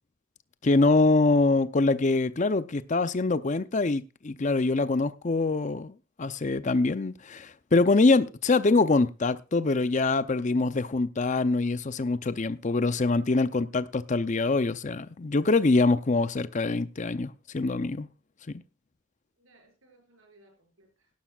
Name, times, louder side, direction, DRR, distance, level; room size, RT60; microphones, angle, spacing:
voice 1, 0.6-18.1 18.5-18.6, left 3 dB, 35° left, 0.5 m, -24 dB
voice 2, 13.5-13.9 19.4-21.1, right 2 dB, 85° right, 6.0 m, -62 dB
17.0 x 11.5 x 2.4 m
head